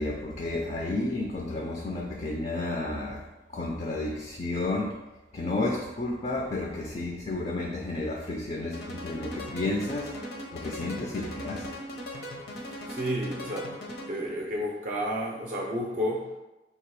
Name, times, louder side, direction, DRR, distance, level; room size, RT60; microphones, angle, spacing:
voice 1, 0.0-5.0 5.3-10.2 10.5-11.7, left 2 dB, 35° left, 0 dB, 0.4 m, -31 dB
sound 1, 8.7-14.4, equal, 65° left, 0.8 m, -39 dB
voice 2, 12.9-13.8 14.1-16.3, equal, 45° right, -2 dB, 0.5 m, -31 dB
3.4 x 2.9 x 4.6 m, 1.0 s
head